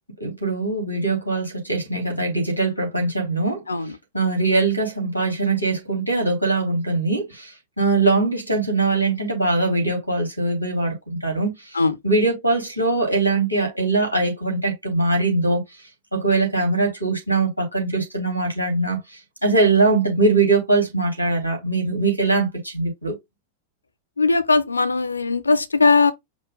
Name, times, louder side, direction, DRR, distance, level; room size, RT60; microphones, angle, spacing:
voice 1, 0.2-3.6 4.1-10.9 11.2-15.6 16.1-19.0 19.4-23.2, right 3 dB, 90° right, 2.8 m, -21 dB
voice 2, 24.2-26.1, left 3 dB, 80° left, 0.6 m, -19 dB
5.2 x 2.5 x 3.7 m
figure-of-eight pair, 90°, 0 cm